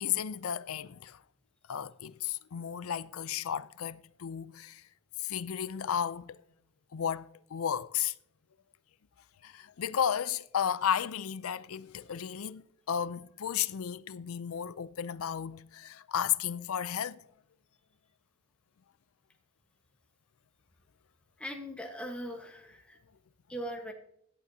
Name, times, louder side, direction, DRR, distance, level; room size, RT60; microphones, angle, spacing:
voice 1, 0.0-1.2 1.7-4.8 5.2-6.4 6.9-8.1 9.4-17.2, left 9 dB, 70° left, 0.5 m, -33 dB
voice 2, 21.4-23.0 23.5-23.9, equal, 5° left, 1.2 m, -40 dB
17.0 x 11.0 x 2.8 m
head